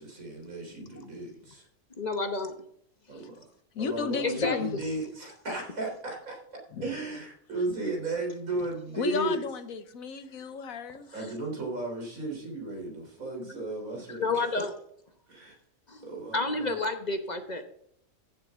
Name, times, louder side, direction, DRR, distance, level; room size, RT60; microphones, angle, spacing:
voice 1, 0.0-1.7 3.1-3.4 3.8-6.4 6.8-9.4 11.1-14.7 15.3-15.5 16.0-16.8, right 2 dB, 90° right, 0 dB, 4.0 m, -35 dB
voice 2, 2.0-2.6 4.2-4.6 11.1-11.2 14.1-14.7 15.9-17.6, left 3 dB, 35° left, 6 dB, 1.0 m, -30 dB
voice 3, 3.7-4.7 6.7-6.9 9.0-11.1, left 6 dB, 90° left, 10 dB, 1.4 m, -33 dB
14.5 x 7.6 x 3.6 m, 0.68 s
omnidirectional pair, 1.4 m